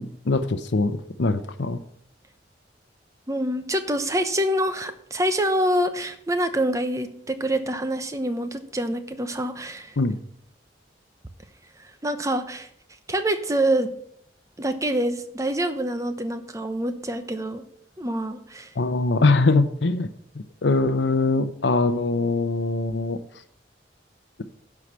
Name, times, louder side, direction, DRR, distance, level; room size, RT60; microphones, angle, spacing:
voice 1, 0.0-1.8 10.0-10.2 18.8-20.1 20.3-23.2, left 3 dB, 85° left, 9 dB, 0.7 m, -22 dB
voice 2, 3.3-10.0 12.0-12.7 13.1-13.9 14.6-17.6 18.0-18.7, right 1 dB, 20° right, 9 dB, 0.8 m, -26 dB
11.0 x 4.8 x 7.5 m, 0.69 s
head